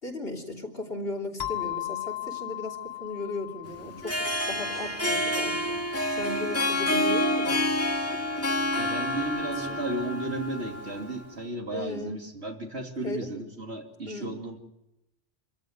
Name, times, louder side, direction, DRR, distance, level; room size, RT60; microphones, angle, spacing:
voice 1, 0.0-4.2 4.5-5.8 6.2-7.7 9.6-9.8 11.7-12.2 13.0-13.3 14.0-14.4, left 2 dB, 55° left, 0 dB, 3.6 m, -36 dB
sound 1, 1.4-5.8, left 14 dB, 40° left, 2.3 m, -37 dB
Harp, 3.9-11.2, left 1 dB, 10° left, 2.0 m, -28 dB
voice 2, 8.8-14.6, right 2 dB, 65° right, 2 dB, 3.1 m, -34 dB
26.5 x 15.0 x 9.5 m, 0.91 s
omnidirectional pair, 1.2 m